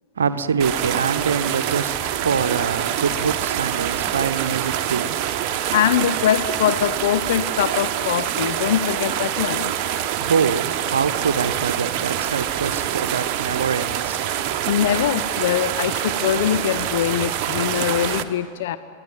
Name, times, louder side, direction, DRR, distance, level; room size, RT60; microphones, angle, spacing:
voice 1, 0.1-5.8 10.1-15.2, right 6 dB, 70° right, 0.9 m, -25 dB
sound 1, 0.6-18.2, right 11 dB, 40° right, 1.1 m, -25 dB
voice 2, 5.7-9.7 14.7-18.8, left 10 dB, 55° left, 0.6 m, -22 dB
23.0 x 17.0 x 9.4 m
figure-of-eight pair, 90°, 0 cm